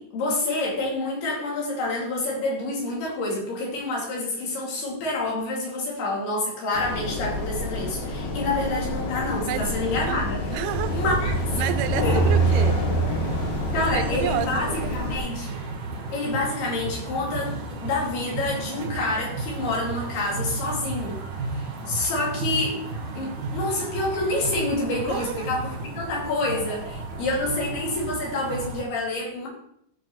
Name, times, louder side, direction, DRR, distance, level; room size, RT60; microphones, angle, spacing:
voice 1, 0.0-10.4 10.9-11.6 12.0-12.2 13.7-15.6 16.1-17.5 17.8-21.2 21.5-22.8 23.1-29.5, left 2 dB, 75° left, 4.4 m, -28 dB
sound 1, 6.7-15.2, right 1 dB, 60° left, 2.4 m, -26 dB
voice 2, 10.0-11.0 11.5-12.9 13.7-15.0 25.1-25.5, right 12 dB, 85° right, 2.5 m, -31 dB
sound 2, 10.7-28.8, right 3 dB, 60° right, 1.3 m, -33 dB
14.5 x 5.5 x 3.1 m
omnidirectional pair, 4.5 m